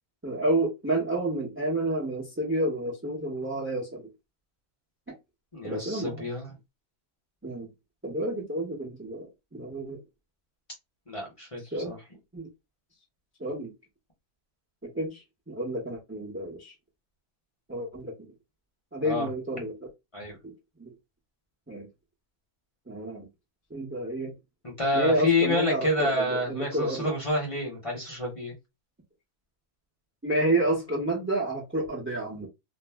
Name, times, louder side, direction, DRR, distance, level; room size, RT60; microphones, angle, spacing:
voice 1, 0.2-4.1 5.1-5.2 5.6-6.3 7.4-7.7 8.0-10.0 11.7-11.9 12.3-12.5 13.4-13.7 14.8-16.7 17.7-18.1 18.9-19.7 20.4-20.5 20.8-20.9 21.7-21.9 22.9-23.3 23.7-24.3 24.9-27.1 30.2-32.5, right 1 dB, 15° right, 0.4 m, -30 dB
voice 2, 5.5-6.5 11.1-12.0 19.0-19.3 20.1-20.4 24.8-28.5, left 2 dB, 30° left, 0.8 m, -28 dB
2.6 x 2.0 x 3.3 m
omnidirectional pair, 1.5 m